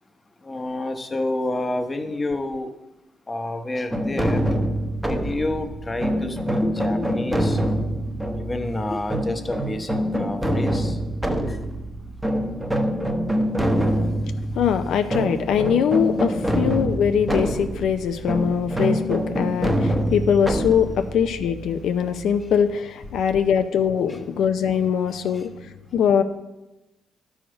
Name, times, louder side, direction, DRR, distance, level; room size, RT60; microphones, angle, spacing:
voice 1, 0.4-2.7 3.3-4.5 5.0-7.6 8.3-11.0 11.5-11.6 13.7-14.0 24.1-24.2 25.2-25.5, left 2 dB, 20° left, 7 dB, 1.0 m, -29 dB
sound 1, 3.9-22.6, equal, 5° right, 1.0 m, -25 dB
voice 2, 14.6-26.2, left 8 dB, 75° left, 8 dB, 0.6 m, -22 dB
12.0 x 5.0 x 5.1 m, 1.0 s
cardioid pair, 90°, 0 cm